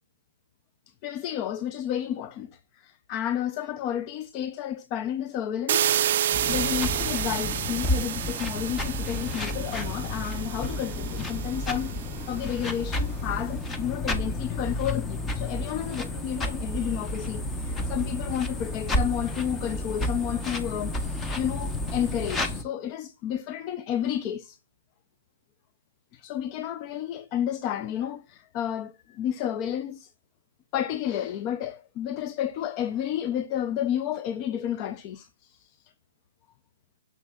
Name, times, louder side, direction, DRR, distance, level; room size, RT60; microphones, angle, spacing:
voice 1, 1.0-6.2 6.5-24.6 26.1-30.1 30.7-35.7, left 10 dB, 30° left, 0.5 m, -31 dB
sound 1, 5.7-12.5, right 11 dB, 50° right, 0.3 m, -30 dB
sound 2, 6.3-22.6, left 1 dB, 15° left, 0.9 m, -31 dB
8.9 x 6.2 x 2.3 m
figure-of-eight pair, 130°, 0 cm